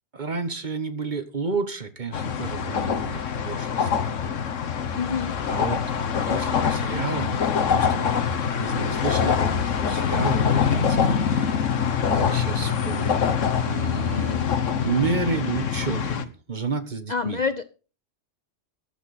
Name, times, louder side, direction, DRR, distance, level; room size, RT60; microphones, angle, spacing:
voice 1, 0.1-4.1 5.5-5.8 6.2-14.5 14.8-17.4, right 4 dB, 40° right, 10 dB, 1.4 m, -31 dB
sound 1, 2.1-16.2, left 7 dB, 80° left, 1.5 m, -24 dB
voice 2, 4.9-5.3 14.1-14.5 17.1-17.7, left 5 dB, 45° left, 12 dB, 0.7 m, -28 dB
14.5 x 10.5 x 4.2 m, 0.36 s
omnidirectional pair, 1.3 m